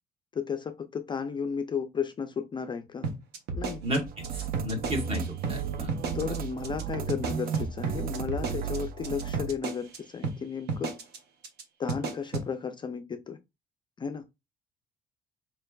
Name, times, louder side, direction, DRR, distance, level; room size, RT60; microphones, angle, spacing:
voice 1, 0.3-3.1 3.5-3.8 6.1-10.9 11.8-13.4 14.0-14.2, left 6 dB, 25° left, 0.4 m, -34 dB
sound 1, 3.0-5.2 5.4-5.6 5.9-6.4 6.6-6.8 7.1-10.0 10.2-10.4 10.7-11.2 11.4-11.6 11.9-12.5, right 4 dB, 75° right, 1.0 m, -33 dB
voice 2, 3.8-5.9 6.3-6.4, equal, 35° right, 1.6 m, -33 dB
sound 2, 4.1-9.5, right 7 dB, 60° right, 0.6 m, -34 dB
4.5 x 3.2 x 2.3 m
cardioid pair, 110°, 17 cm